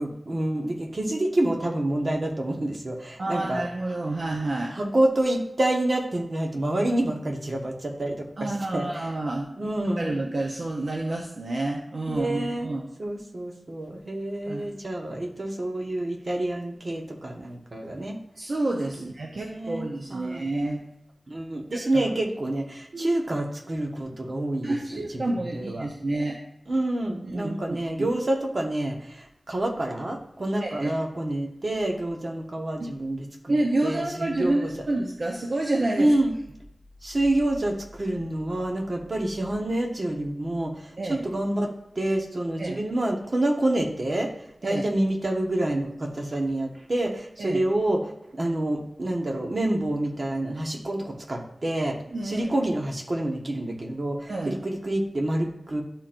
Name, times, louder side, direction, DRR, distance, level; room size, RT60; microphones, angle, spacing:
voice 1, 0.0-3.6 4.7-9.1 9.6-10.1 12.2-12.7 13.0-18.2 19.4-20.4 21.3-25.9 26.7-33.5 33.8-34.7 36.0-36.3 37.0-44.3 44.6-52.0 52.2-55.8, right 1 dB, 45° right, 1 dB, 1.3 m, -28 dB
voice 2, 3.2-4.8 8.4-9.5 10.0-12.9 14.5-14.7 18.4-20.9 21.7-22.1 22.9-23.1 24.6-26.4 27.2-28.1 30.6-30.9 32.8-32.9 33.5-36.1 41.0-41.3 42.6-42.8 44.6-44.8 47.4-47.6 52.1-52.5 54.3-54.6, right 2 dB, 65° right, 0 dB, 0.8 m, -29 dB
12.0 x 4.4 x 2.6 m, 0.77 s
wide cardioid pair, 80°, 0 cm